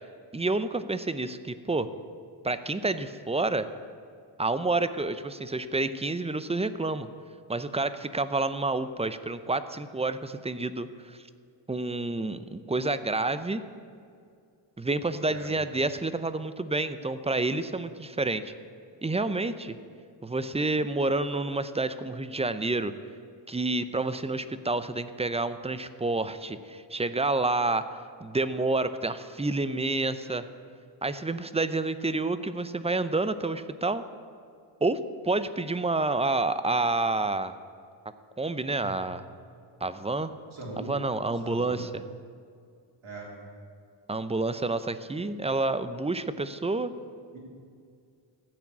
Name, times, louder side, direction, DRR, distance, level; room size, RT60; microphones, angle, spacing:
voice 1, 0.3-1.9 2.4-3.7 4.4-7.1 7.5-11.2 11.7-13.6 14.8-18.5 19.0-19.8 20.2-22.9 23.5-27.9 28.2-30.5 31.0-34.0 34.8-37.5 38.4-39.2 39.8-40.3 40.9-42.0 44.1-46.9, right 2 dB, 15° right, 12 dB, 0.5 m, -29 dB
voice 2, 40.5-41.0 41.4-41.9 43.0-43.3 47.3-47.4, right 2 dB, 80° right, -3 dB, 3.7 m, -40 dB
14.5 x 6.0 x 8.5 m, 2.3 s
cardioid pair, 80°, 48 cm